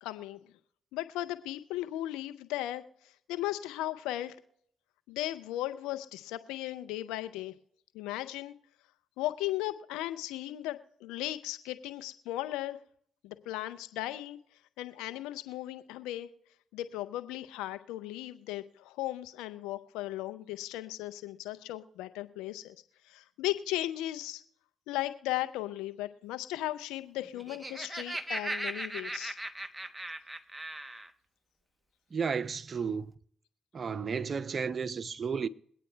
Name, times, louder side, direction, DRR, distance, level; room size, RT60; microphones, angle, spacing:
voice 1, 0.0-0.5 0.9-2.8 3.3-4.4 5.1-7.5 7.9-8.5 9.2-12.8 13.2-14.4 14.8-16.3 16.7-22.8 23.1-24.4 24.9-29.4, left 15 dB, 80° left, 0.6 m, -36 dB
Laughter, 27.3-31.1, right 1 dB, 15° right, 0.9 m, -38 dB
voice 2, 32.1-33.1 33.7-35.5, right 6 dB, 45° right, 0.5 m, -33 dB
22.5 x 8.9 x 2.2 m
hypercardioid pair, 50°, 0 cm